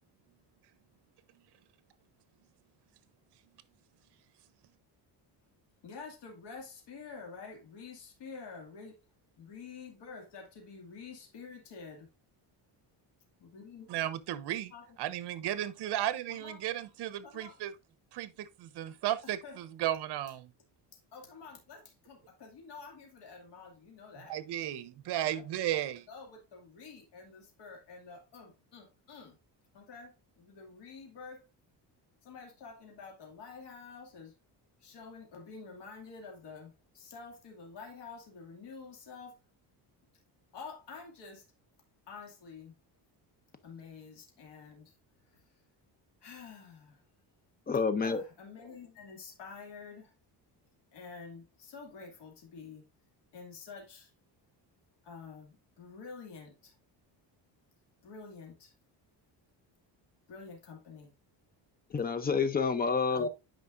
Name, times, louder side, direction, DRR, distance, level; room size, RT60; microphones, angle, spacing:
voice 1, 5.8-9.0 9.4-12.1 13.4-13.9 14.7-15.0 16.3-16.6 17.2-17.6 19.2-19.6 21.1-24.3 25.1-25.5 26.1-29.4 29.7-31.4 32.2-34.3 34.8-39.4 40.5-41.4 42.1-42.7 43.6-44.9 46.2-47.0 48.0-50.1 50.9-52.8 53.3-54.1 55.0-56.7 58.0-58.7 60.3-61.1 63.1-63.3, left 5 dB, 65° left, 2.5 m, -48 dB
voice 2, 13.9-14.7 15.0-17.7 18.1-20.5 24.3-26.0, right 12 dB, 65° right, 0.8 m, -34 dB
voice 3, 47.7-48.2 61.9-63.3, left 5 dB, 20° left, 0.6 m, -28 dB
9.3 x 5.1 x 2.5 m
cardioid pair, 150°, 43 cm